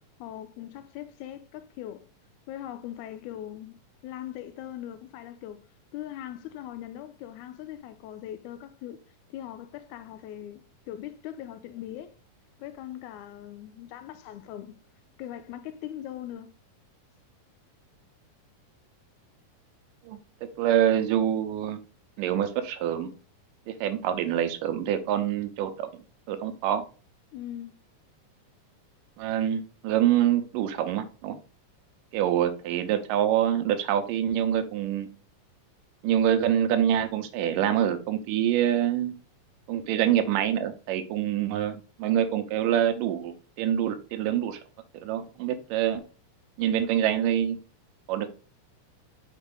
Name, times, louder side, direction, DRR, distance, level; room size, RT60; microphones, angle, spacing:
voice 1, 0.2-2.1 2.5-5.6 5.9-9.0 9.3-12.1 12.6-14.7 15.2-16.5 27.3-27.8, left 12 dB, 80° left, 1.9 m, -40 dB
voice 2, 20.6-21.8 22.2-23.1 23.7-25.9 26.3-26.8 29.2-31.4 32.1-35.1 36.0-39.1 39.7-44.6 45.0-46.0 46.6-47.6 48.1-48.3, right 10 dB, 80° right, 2.4 m, -26 dB
6.1 x 4.6 x 3.8 m
omnidirectional pair, 3.9 m